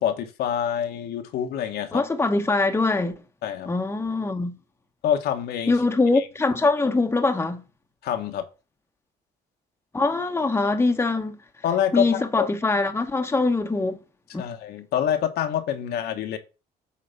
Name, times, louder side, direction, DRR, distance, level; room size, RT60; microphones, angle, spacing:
voice 1, 0.0-2.0 3.4-3.7 5.0-5.7 6.1-6.2 8.0-8.4 11.6-12.5 14.4-16.4, left 9 dB, 70° left, 1.2 m, -26 dB
voice 2, 1.9-3.2 3.7-4.6 5.7-7.6 9.9-11.4 11.9-14.0 14.3-14.5, left 3 dB, 15° left, 1.0 m, -23 dB
8.6 x 3.4 x 5.5 m
cardioid pair, 110°, 17 cm